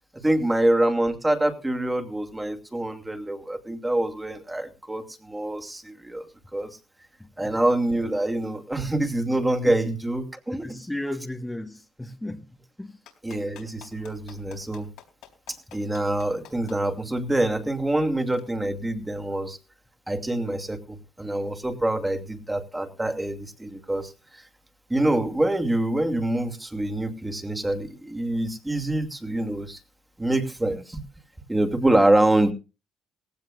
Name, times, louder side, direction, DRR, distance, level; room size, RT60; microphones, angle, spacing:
voice 1, 0.2-6.3 6.5-6.8 7.4-10.7 13.2-14.9 15.7-19.6 20.1-24.4 24.9-29.8 30.2-31.0 31.5-32.5, right 1 dB, 15° right, 5 dB, 2.6 m, -25 dB
voice 2, 7.2-7.6 9.6-9.8 10.6-13.0, left 1 dB, 10° left, 2 dB, 1.6 m, -35 dB
Clapping, 13.1-16.8 18.3-18.4, left 11 dB, 80° left, 3.9 m, -48 dB
18.0 x 16.0 x 2.5 m, 0.31 s
supercardioid pair, 75°, 0 cm